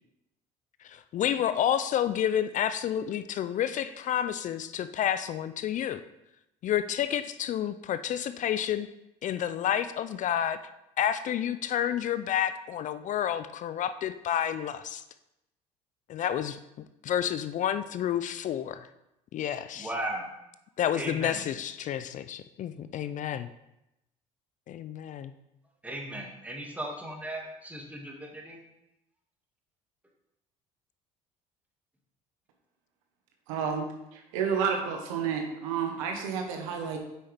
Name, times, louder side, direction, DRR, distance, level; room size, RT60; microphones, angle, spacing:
voice 1, 0.8-6.0 6.6-8.9 9.2-10.6 11.0-15.0 16.1-16.6 17.0-18.9 19.3-19.9 20.8-23.5 24.7-25.3, left 10 dB, 50° left, 12 dB, 0.4 m, -30 dB
voice 2, 19.8-20.3 20.9-21.5 25.8-28.6, right 1 dB, 10° right, -1 dB, 2.0 m, -37 dB
voice 3, 33.5-37.0, right 6 dB, 85° right, 3 dB, 1.1 m, -30 dB
8.3 x 5.6 x 3.4 m, 0.88 s
hypercardioid pair, 70°, 17 cm